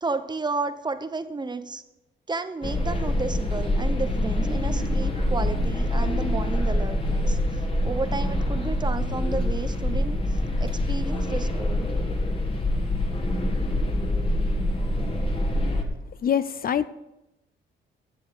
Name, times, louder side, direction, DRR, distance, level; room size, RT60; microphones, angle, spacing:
voice 1, 0.0-1.8 2.3-7.4 7.8-10.2 10.6-11.9, right 3 dB, 20° right, 10 dB, 1.0 m, -32 dB
sound 1, 2.6-15.8, left 1 dB, 25° left, 2.1 m, -25 dB
voice 2, 16.2-16.9, left 8 dB, 50° left, 15 dB, 0.5 m, -24 dB
15.5 x 7.0 x 5.3 m, 0.92 s
cardioid pair, 90°, 20 cm